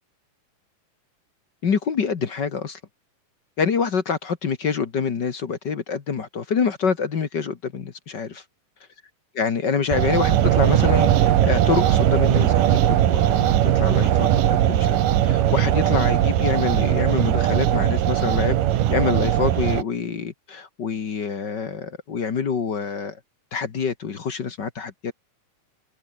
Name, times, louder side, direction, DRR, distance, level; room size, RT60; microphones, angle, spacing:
voice 1, 1.6-2.8 3.6-8.4 9.3-18.6 18.9-23.2 23.5-25.1, left 6 dB, 40° left, 1.7 m, -26 dB
sound 1, 9.9-19.8, right 12 dB, 85° right, 3.1 m, -19 dB
omnidirectional pair, 3.8 m